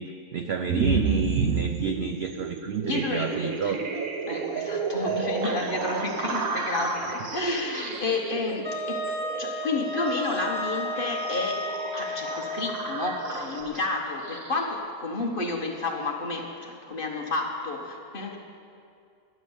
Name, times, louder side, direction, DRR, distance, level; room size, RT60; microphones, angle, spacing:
voice 1, 0.0-3.8 5.1-5.3 7.4-7.6, right 6 dB, 80° right, 7 dB, 0.5 m, -30 dB
sound 1, 0.7-14.8, right 4 dB, 60° right, 1.4 m, -31 dB
voice 2, 2.8-3.8 4.3-18.4, left 3 dB, 40° left, 1 dB, 1.1 m, -31 dB
Wind instrument woodwind instrument, 8.6-13.3, equal, 15° left, 1.4 m, -33 dB
11.5 x 9.5 x 7.1 m, 2.4 s
omnidirectional pair, 1.7 m